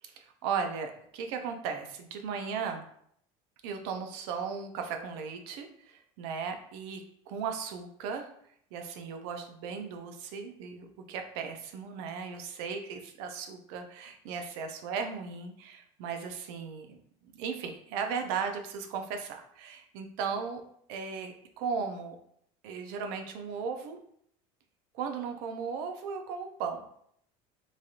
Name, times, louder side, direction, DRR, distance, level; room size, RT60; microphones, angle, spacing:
voice 1, 0.0-2.8 3.6-8.3 8.7-17.0 17.2-20.6 20.9-22.2 22.6-24.0 24.9-26.9, right 6 dB, 80° right, 5 dB, 0.5 m, -36 dB
3.1 x 2.7 x 2.4 m, 0.67 s
cardioid pair, 150°, 14 cm